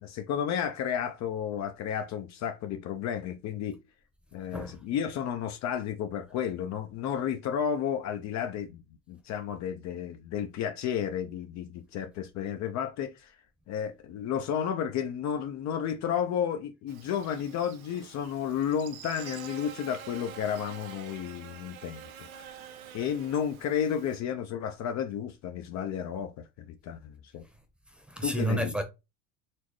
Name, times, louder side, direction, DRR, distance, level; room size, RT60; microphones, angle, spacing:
voice 1, 0.0-3.8 4.3-8.8 9.1-13.3 13.7-22.0 22.3-22.6 22.9-27.4 28.2-28.7, left 8 dB, 45° left, 0.6 m, -32 dB
Buzz, 16.9-24.2, right 8 dB, 90° right, 1.0 m, -47 dB
voice 2, 28.1-28.8, right 1 dB, 5° right, 0.9 m, -30 dB
4.3 x 3.0 x 3.1 m
supercardioid pair, 115°, 40 cm